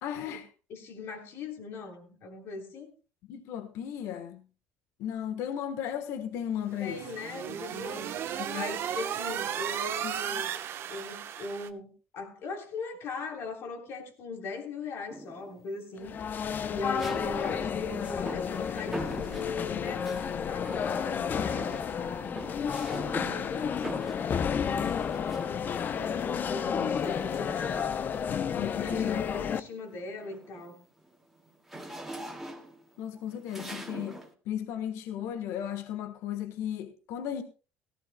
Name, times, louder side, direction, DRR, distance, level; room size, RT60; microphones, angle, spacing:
voice 1, 0.0-0.5 3.3-4.4 5.0-7.0 8.3-8.6 10.0-10.1 28.5-29.3 33.0-34.2 34.5-37.4, left 10 dB, 70° left, 1.2 m, -35 dB
voice 2, 0.7-2.9 6.8-8.2 8.5-10.6 10.9-16.1 16.7-22.3 23.1-24.2 25.9-28.0 28.8-30.8, left 3 dB, 55° left, 3.3 m, -40 dB
sound 1, 6.7-11.7, right 10 dB, 55° right, 1.0 m, -35 dB
sound 2, 15.1-15.6 17.0-20.3 20.7-21.2 21.5-25.9 27.0-28.4 28.9-29.2 29.6-34.3, right 1 dB, 5° right, 2.1 m, -43 dB
sound 3, 16.0-29.6, left 7 dB, 40° left, 0.6 m, -31 dB
17.5 x 14.5 x 2.2 m
cardioid pair, 115°, 5 cm